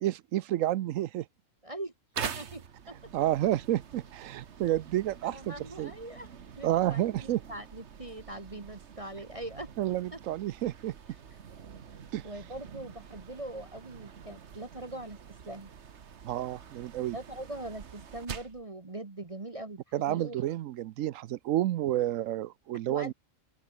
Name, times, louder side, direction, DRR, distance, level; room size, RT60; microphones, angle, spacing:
voice 1, 0.0-1.3 3.1-5.9 6.6-7.4 9.8-10.9 12.1-12.3 16.2-17.2 19.9-23.1, right 13 dB, 80° right, 1.0 m, -30 dB
voice 2, 1.6-3.0 5.2-6.3 6.6-9.7 10.1-10.2 12.2-15.2 15.4-15.7 17.1-20.4 22.9-23.1, right 1 dB, 25° right, 1.4 m, -42 dB
sound 1, 2.1-18.6, right 7 dB, 60° right, 1.4 m, -45 dB
open air
omnidirectional pair, 1.4 m